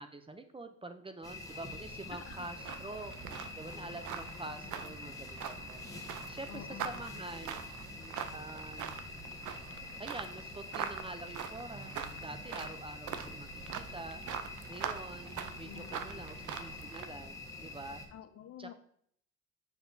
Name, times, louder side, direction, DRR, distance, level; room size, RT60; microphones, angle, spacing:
voice 1, 0.0-3.1 3.6-5.8 6.3-7.6 8.3-8.9 10.0-14.2 14.7-18.0 18.6-18.7, right 2 dB, 20° right, 8 dB, 0.5 m, -46 dB
sound 1, 1.2-18.1, left 2 dB, 10° left, 1.2 m, -46 dB
voice 2, 2.1-2.5 4.4-5.0 6.5-7.5 15.4-16.2 18.1-18.7, left 9 dB, 55° left, 9 dB, 0.7 m, -50 dB
sound 2, 2.3-17.1, right 8 dB, 80° right, 0.6 m, -43 dB
6.8 x 6.0 x 2.7 m, 0.65 s
cardioid pair, 90°, 30 cm